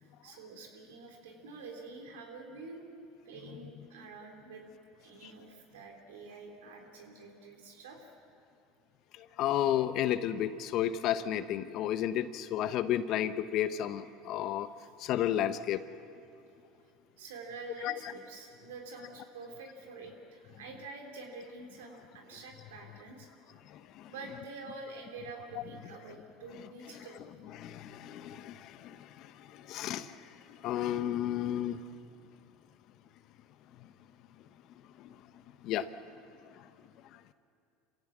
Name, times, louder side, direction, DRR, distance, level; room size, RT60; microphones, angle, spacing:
voice 1, 0.0-4.6 5.0-8.1 14.8-14.9 17.2-23.3 24.1-27.2, right 3 dB, 85° right, 1 dB, 3.7 m, -47 dB
voice 2, 9.2-14.7 15.0-15.8 17.8-17.9 23.7-24.1 27.0-27.1 27.5-31.8 35.0-35.1 35.6-35.9 36.5-36.6, left 11 dB, 55° left, 12 dB, 1.0 m, -32 dB
27.0 x 16.5 x 7.4 m, 2.6 s
hypercardioid pair, 85°, 0 cm